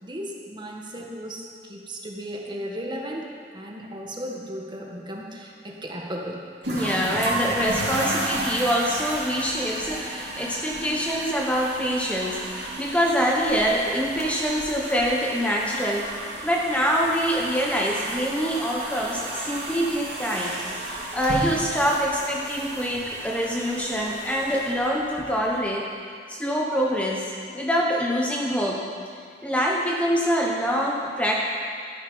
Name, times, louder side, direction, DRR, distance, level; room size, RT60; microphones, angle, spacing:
voice 1, 0.0-3.3 3.5-6.4, equal, 25° right, 0 dB, 1.6 m, -35 dB
sound 1, 6.6-25.5, right 1 dB, 75° right, 2.8 m, -33 dB
voice 2, 6.7-16.1 16.4-25.8 26.3-28.8 29.4-31.3, equal, 10° left, -2 dB, 1.0 m, -25 dB
13.0 x 10.0 x 5.5 m, 2.3 s
head